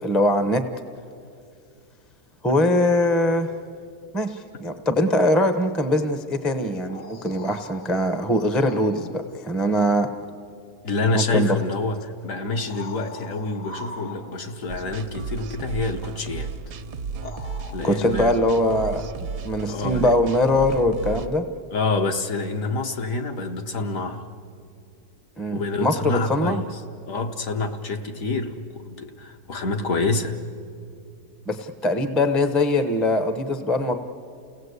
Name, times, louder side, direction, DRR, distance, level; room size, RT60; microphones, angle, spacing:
voice 1, 0.0-0.6 2.4-3.5 4.1-10.1 11.1-11.6 17.8-19.1 19.4-21.4 25.4-26.6 31.5-33.9, left 1 dB, ahead, 8 dB, 0.7 m, -22 dB
sound 1, 6.6-9.2 11.1-11.2 12.4-14.6 16.5-16.6 17.2-19.3 22.4-22.5, left 3 dB, 85° left, 2.3 m, -42 dB
voice 2, 10.8-16.5 17.7-18.4 19.7-20.2 21.1-21.2 21.7-24.3 25.5-26.7 27.1-30.4, left 3 dB, 55° left, 4 dB, 1.5 m, -27 dB
sound 2, 14.7-21.3, right 5 dB, 80° right, 1.4 m, -33 dB
29.5 x 17.5 x 8.1 m, 2.4 s
omnidirectional pair, 1.8 m